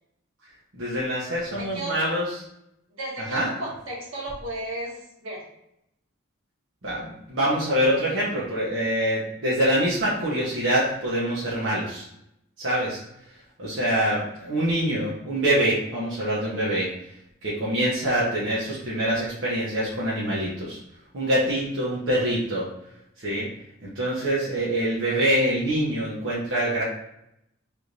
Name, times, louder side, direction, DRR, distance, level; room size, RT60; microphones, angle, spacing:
voice 1, 0.7-2.2 3.3-3.5 6.8-12.0 12.6-13.0 13.6-16.9 17.4-20.8 21.1-22.7 23.2-23.5 23.8-26.8, right 1 dB, 65° right, -8 dB, 1.1 m, -25 dB
voice 2, 1.6-2.1 2.9-5.4, right 1 dB, 85° right, -4 dB, 1.6 m, -34 dB
3.5 x 2.6 x 4.5 m, 0.80 s
head